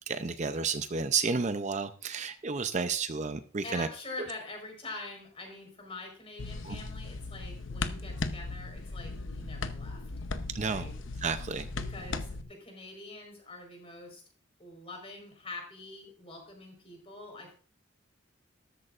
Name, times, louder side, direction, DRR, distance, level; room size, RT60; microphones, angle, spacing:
voice 1, 0.1-3.9 4.2-4.3 6.6-6.8 10.5-10.9 11.2-11.7, right 4 dB, 35° right, 10 dB, 0.6 m, -31 dB
voice 2, 3.6-10.0 10.6-10.9 11.8-14.2 14.6-17.5, left 2 dB, 30° left, 2 dB, 4.5 m, -44 dB
sound 1, 6.4-12.4, left 3 dB, 70° left, 0.9 m, -37 dB
13.0 x 13.0 x 2.5 m, 0.41 s
head